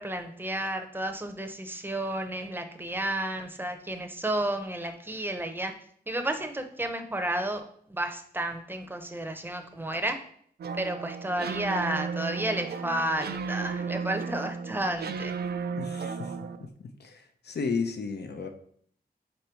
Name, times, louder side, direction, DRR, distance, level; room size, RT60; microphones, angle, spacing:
voice 1, 0.0-5.7 6.1-10.2 10.8-15.3, right 1 dB, 10° right, 6 dB, 0.7 m, -32 dB
sound 1, 10.6-16.7, right 5 dB, 70° right, 0.4 m, -34 dB
voice 2, 15.8-16.3 16.6-18.5, left 4 dB, 75° left, 7 dB, 0.7 m, -34 dB
5.2 x 4.1 x 4.4 m, 0.62 s
wide cardioid pair, 100°, 17 cm